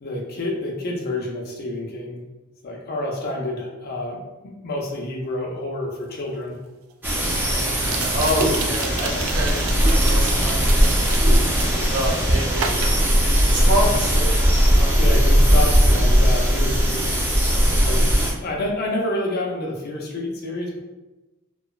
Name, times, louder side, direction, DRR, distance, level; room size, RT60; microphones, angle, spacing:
voice 1, 0.0-2.2 2.6-4.2 4.4-6.6 13.7-14.3 15.0-17.1 17.8-18.0 18.4-20.8, left 1 dB, 50° left, -1 dB, 0.5 m, -28 dB
sound 1, 6.1-6.2 7.8-12.0 12.5-13.9 14.2-14.5, right 6 dB, 85° right, 0.3 m, -33 dB
sound 2, 7.0-18.3, equal, 10° right, 0.5 m, -18 dB
voice 2, 8.1-9.6 9.8-11.3 11.9-12.7 13.5-14.2 14.7-14.9, equal, 60° right, -4 dB, 0.8 m, -26 dB
2.9 x 2.2 x 2.3 m, 1.1 s
head